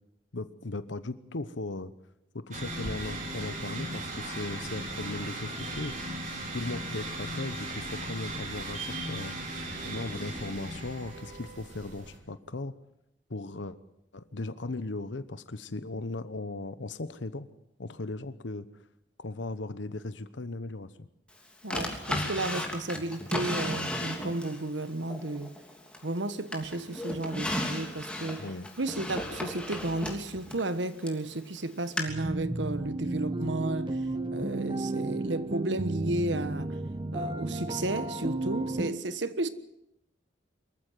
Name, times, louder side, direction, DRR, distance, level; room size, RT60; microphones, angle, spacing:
voice 1, 0.3-1.9 2.3-5.9 6.5-9.3 9.8-12.7 13.3-13.8 14.1-17.5 17.8-18.7 19.2-20.9 28.4-28.7, left 2 dB, 85° left, 1.0 m, -37 dB
sound 1, 2.5-12.2, right 1 dB, 45° right, 5.1 m, -37 dB
voice 2, 21.6-25.5 26.0-28.4 28.8-34.0 34.3-36.8 37.1-39.5, right 2 dB, 80° right, 1.4 m, -33 dB
Drawer open or close, 21.7-24.6 25.1-26.2 26.5-31.2 32.0-32.1, left 1 dB, 5° left, 3.0 m, -34 dB
sound 2, 32.1-38.9, right 2 dB, 25° right, 1.2 m, -33 dB
24.0 x 14.5 x 9.2 m
head